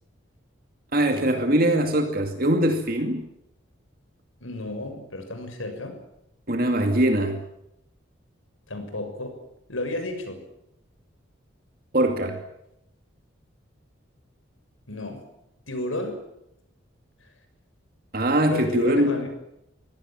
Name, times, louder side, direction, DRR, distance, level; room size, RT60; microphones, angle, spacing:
voice 1, 0.9-3.3 6.5-7.4 11.9-12.4 18.1-19.2, right 1 dB, 45° right, 5 dB, 2.4 m, -22 dB
voice 2, 4.4-6.0 8.7-9.4 9.7-10.4 14.9-15.2 15.7-16.2 17.2-17.3 18.5-19.3, left 2 dB, 85° left, 6 dB, 6.8 m, -32 dB
24.5 x 17.5 x 9.1 m, 0.81 s
head